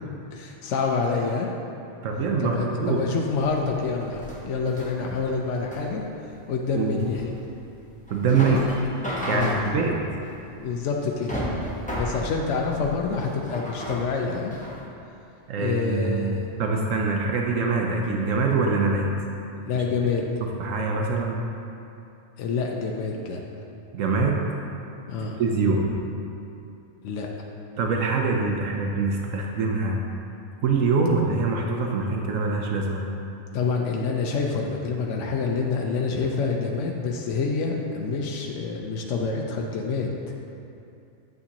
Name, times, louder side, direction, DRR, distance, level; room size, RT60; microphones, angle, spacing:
voice 1, 0.1-1.5 2.4-6.0 6.5-7.3 8.3-8.6 9.3-9.6 10.6-11.3 12.0-14.6 15.5-16.5 19.6-20.2 22.4-23.4 25.1-25.4 27.0-27.3 33.5-40.3, left 4 dB, 70° left, 0 dB, 1.0 m, -27 dB
voice 2, 2.0-3.0 6.8-7.0 8.1-8.6 9.3-10.1 15.5-19.1 19.7-19.8 20.4-21.5 23.9-24.5 25.2-26.0 27.8-30.0 30.6-33.1, right 4 dB, 80° right, 1 dB, 1.0 m, -24 dB
sound 1, 3.3-14.8, equal, 5° left, 1.0 m, -35 dB
8.4 x 7.8 x 2.9 m, 2.7 s
omnidirectional pair, 1.3 m